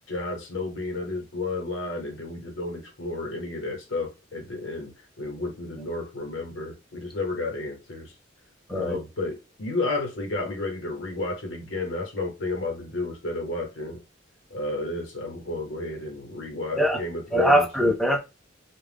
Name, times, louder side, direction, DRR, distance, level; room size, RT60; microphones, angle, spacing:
voice 1, 0.1-8.1 8.7-14.0 14.5-17.7, left 2 dB, 75° left, 1.0 m, -32 dB
voice 2, 17.3-18.2, equal, ahead, 0.4 m, -21 dB
2.3 x 2.0 x 3.3 m
head